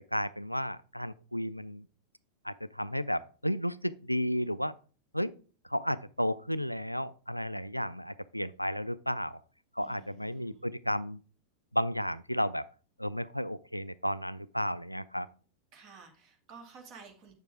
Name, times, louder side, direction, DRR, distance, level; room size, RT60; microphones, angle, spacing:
voice 1, 0.1-1.9 2.4-4.7 5.1-5.3 5.7-9.4 9.8-11.2 11.7-12.7 13.0-15.3, equal, 90° left, 0.3 m, -33 dB
voice 2, 9.8-10.7 15.7-17.3, right 5 dB, 40° right, 2.2 m, -52 dB
8.0 x 6.7 x 3.6 m
figure-of-eight pair, 90°, 0 cm